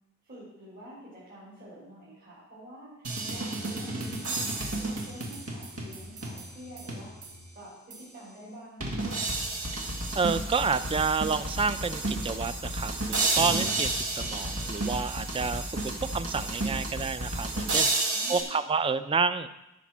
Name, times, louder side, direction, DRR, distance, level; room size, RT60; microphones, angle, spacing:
voice 1, 0.2-7.1 7.5-9.2 18.1-18.6, right 1 dB, 45° right, -9 dB, 3.9 m, -47 dB
sound 1, 3.0-7.5 7.9-8.0 8.8-18.4, right 2 dB, 90° right, 2.0 m, -31 dB
voice 2, 10.1-17.9 18.3-19.5, right 5 dB, 25° right, 13 dB, 0.4 m, -29 dB
14.0 x 5.1 x 6.1 m, 0.93 s
head